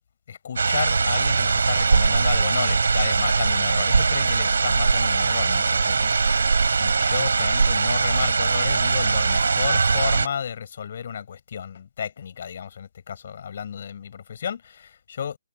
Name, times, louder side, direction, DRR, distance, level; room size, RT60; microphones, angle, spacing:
voice 1, 0.3-6.5 6.8-15.4, left 8 dB, 55° left, 6.3 m, -32 dB
sound 1, 0.6-10.3, right 4 dB, 80° right, 5.9 m, -21 dB
hypercardioid pair, 155°, 0 cm